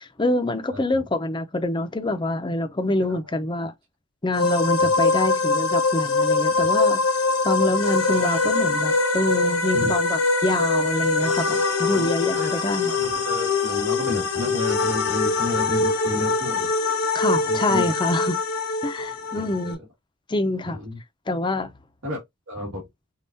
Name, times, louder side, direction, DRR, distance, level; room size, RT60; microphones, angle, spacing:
voice 1, 0.0-3.7 4.2-7.0 7.4-12.9 17.1-18.4 18.8-19.8 20.3-20.8 21.3-21.7, left 2 dB, 20° left, 0.5 m, -26 dB
voice 2, 0.7-1.0 3.1-3.2 4.8-4.9 9.7-9.9 11.8-12.1 12.3-16.7 17.5-17.9 19.3-19.8 20.6-21.0 22.0-22.2 22.5-22.8, left 1 dB, 80° right, 1.8 m, -32 dB
sound 1, 4.3-19.7, left 3 dB, 85° left, 1.1 m, -23 dB
5.5 x 2.4 x 2.7 m
head